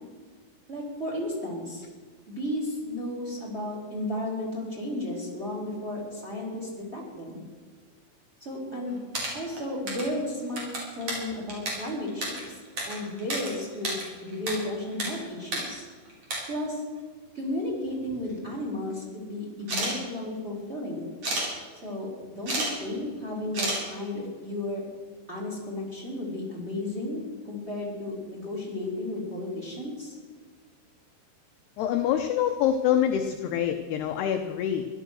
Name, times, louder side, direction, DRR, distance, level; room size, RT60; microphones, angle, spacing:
voice 1, 0.7-1.8 2.3-7.4 8.4-9.0 9.3-10.7 10.9-12.6 12.9-15.9 16.5-16.8 17.3-21.1 21.8-24.8 25.3-30.2, left 1 dB, 15° right, -1 dB, 3.3 m, -33 dB
sound 1, 8.9-10.1 10.4-13.5 13.7-14.5 14.8-15.1 15.4-15.6 16.0-16.4 17.4-17.5 17.8-18.5 19.6-19.9 21.2-21.5 22.2-22.7 23.0-23.1 23.5-23.8, right 1 dB, 30° right, 4.7 m, -31 dB
voice 2, 31.8-34.9, left 10 dB, 80° left, 6 dB, 2.4 m, -25 dB
17.0 x 12.0 x 6.4 m, 1.5 s
omnidirectional pair, 5.7 m